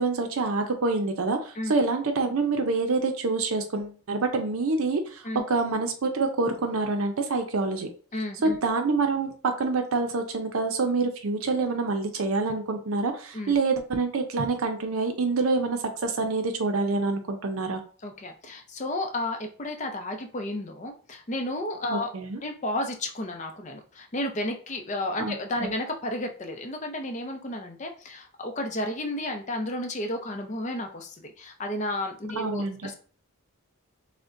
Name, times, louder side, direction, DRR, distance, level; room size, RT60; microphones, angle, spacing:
voice 1, 0.0-7.9 8.4-17.8 21.9-22.4 25.2-25.3 25.6-25.7 32.4-32.8, right 3 dB, 75° right, 5 dB, 0.5 m, -26 dB
voice 2, 8.1-8.6 13.3-13.6 18.0-22.1 22.4-32.9, left 1 dB, 35° left, 4 dB, 0.5 m, -32 dB
6.1 x 2.1 x 2.5 m, 0.41 s
head